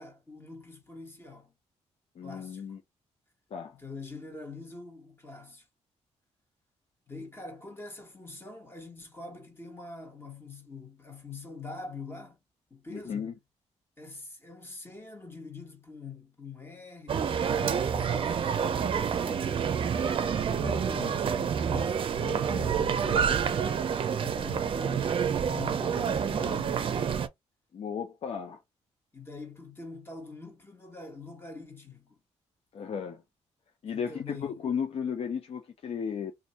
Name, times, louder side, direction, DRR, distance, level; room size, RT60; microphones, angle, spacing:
voice 1, 0.0-1.5 2.2-2.6 3.8-5.7 7.1-12.4 12.7-13.4 14.0-19.7 20.4-23.7 24.2-27.1 29.1-32.1 33.9-34.6, left 4 dB, 20° left, 1.5 m, -44 dB
voice 2, 2.2-2.8 3.5-3.8 12.9-13.3 27.7-28.6 32.7-33.2 33.8-36.3, left 7 dB, 55° left, 0.6 m, -34 dB
sound 1, 17.1-27.3, right 7 dB, 45° right, 0.5 m, -28 dB
2.6 x 2.6 x 4.2 m
cardioid pair, 105°, 12 cm